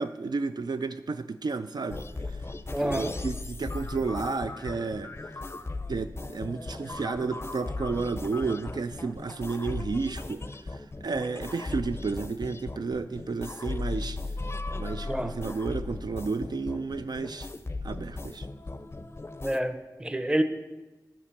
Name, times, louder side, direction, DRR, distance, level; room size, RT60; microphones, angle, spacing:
voice 1, 0.0-2.0 2.8-5.1 5.9-10.4 10.7-14.2 14.8-17.5 17.8-18.5, right 4 dB, 70° right, 0.4 m, -32 dB
sound 1, 1.9-19.6, left 2 dB, 35° left, 0.5 m, -37 dB
voice 2, 2.7-3.1 15.1-15.3 19.4-20.4, right 1 dB, 10° right, 0.8 m, -28 dB
10.0 x 5.2 x 7.0 m
wide cardioid pair, 70°, 7 cm